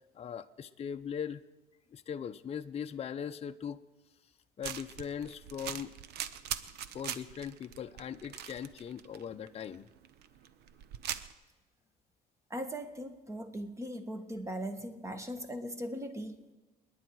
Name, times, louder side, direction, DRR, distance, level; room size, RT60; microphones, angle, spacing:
voice 1, 0.2-1.4 1.9-3.8 4.6-5.9 6.9-9.9, left 8 dB, 35° left, 7 dB, 0.6 m, -40 dB
sound 1, 4.6-11.3, right 10 dB, 75° right, 0.8 m, -42 dB
voice 2, 12.5-16.5, equal, 15° right, 8 dB, 1.5 m, -39 dB
30.0 x 10.0 x 4.7 m, 1.2 s
cardioid pair, 110°, 17 cm